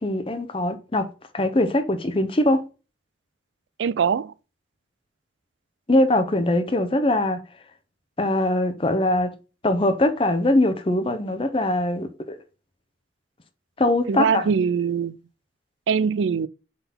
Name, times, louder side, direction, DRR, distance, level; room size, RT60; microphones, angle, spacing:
voice 1, 0.0-2.6 5.9-7.4 8.2-9.4 9.6-12.4 13.8-14.5, left 1 dB, 30° left, 0.7 m, -22 dB
voice 2, 3.8-4.3 14.1-15.2 15.9-16.5, right 6 dB, 85° right, 0.4 m, -22 dB
5.6 x 3.9 x 5.7 m
head